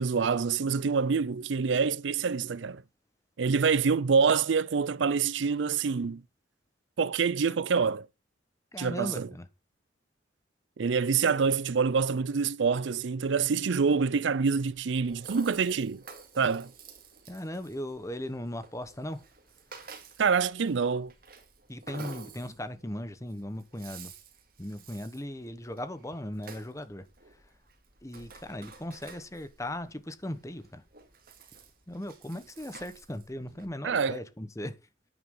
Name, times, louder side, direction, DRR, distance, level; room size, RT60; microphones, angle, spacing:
voice 1, 0.0-2.8 3.4-6.2 7.0-8.1 8.8-9.3 10.8-16.0 16.4-16.7 20.2-21.1 22.0-22.1 33.8-34.2, right 5 dB, 75° right, 0.5 m, -26 dB
voice 2, 8.7-9.5 17.3-19.2 19.8-19.9 21.7-24.1 24.6-27.0 27.3-27.4 28.0-30.8 31.9-34.7, left 1 dB, 15° left, 1.1 m, -38 dB
Rattle (instrument), 14.7-33.7, right 4 dB, 50° right, 2.6 m, -51 dB
9.5 x 9.1 x 3.8 m
head